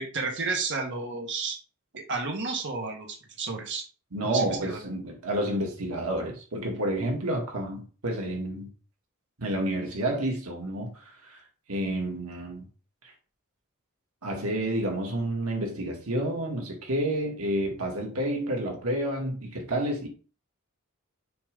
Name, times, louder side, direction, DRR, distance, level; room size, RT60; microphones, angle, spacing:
voice 1, 0.0-1.6 2.0-3.8 4.2-4.8, right 4 dB, 60° right, 1.6 m, -32 dB
voice 2, 4.1-8.7 9.4-11.4 11.7-12.7 13.0-13.1 14.2-20.1, right 1 dB, 90° right, 1.9 m, -30 dB
6.9 x 3.2 x 5.2 m
head